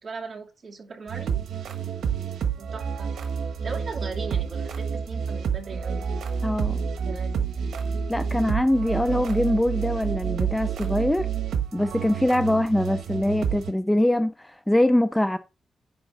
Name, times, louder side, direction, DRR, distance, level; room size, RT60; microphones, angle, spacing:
voice 1, 0.0-1.4 2.6-3.1 3.6-6.1 7.0-7.5, right 4 dB, 40° right, 2.5 m, -38 dB
sound 1, 1.1-13.7, right 7 dB, 85° right, 1.2 m, -29 dB
voice 2, 6.4-6.8 8.1-11.3 11.7-15.4, left 1 dB, 5° left, 0.4 m, -23 dB
9.6 x 3.6 x 6.2 m
wide cardioid pair, 165°, 0 cm